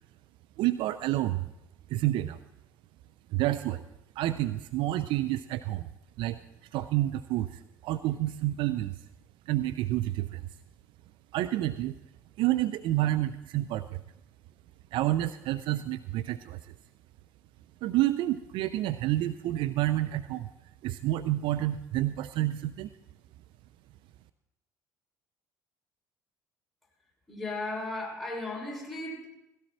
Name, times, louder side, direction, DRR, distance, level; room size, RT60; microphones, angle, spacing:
voice 1, 0.6-1.5 1.9-2.4 3.3-3.8 4.2-5.9 6.2-6.4 6.7-9.0 9.5-10.4 11.3-12.0 12.4-14.0 14.9-16.7 17.8-20.5 20.8-22.9, right 15 dB, 55° right, 11 dB, 0.5 m, -29 dB
voice 2, 27.3-29.3, left 2 dB, ahead, -3 dB, 6.3 m, -35 dB
17.5 x 16.5 x 4.4 m, 0.89 s
figure-of-eight pair, 55°, 10 cm